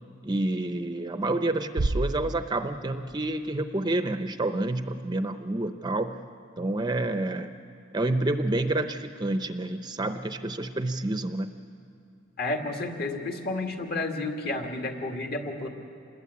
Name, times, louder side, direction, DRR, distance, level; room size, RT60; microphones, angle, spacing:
voice 1, 0.2-6.2 6.6-7.5 7.9-11.5, right 2 dB, 20° right, 8 dB, 0.7 m, -28 dB
sound 1, 1.8-3.7, right 2 dB, 70° right, 0.6 m, -31 dB
voice 2, 12.4-15.7, left 2 dB, 50° left, 3 dB, 2.3 m, -31 dB
27.5 x 20.5 x 8.5 m, 2.6 s
head